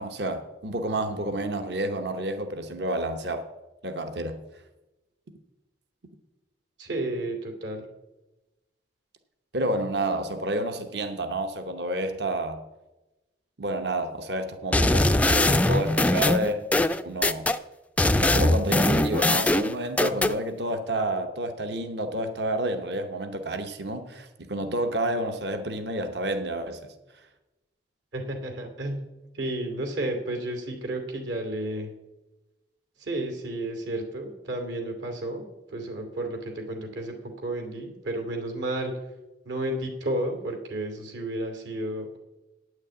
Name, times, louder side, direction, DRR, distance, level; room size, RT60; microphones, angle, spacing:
voice 1, 0.0-3.5 3.8-4.4 9.5-12.6 13.6-16.7 17.0-17.5 18.2-26.9, right 1 dB, 60° right, 8 dB, 1.0 m, -29 dB
voice 2, 6.8-7.8 28.1-29.0 29.3-31.9 33.0-38.9 39.4-42.2, right 1 dB, 80° right, 4 dB, 2.7 m, -32 dB
sound 1, 14.7-17.6 18.0-20.3, left 1 dB, 10° left, 0.3 m, -21 dB
9.4 x 6.5 x 8.7 m, 1.0 s
head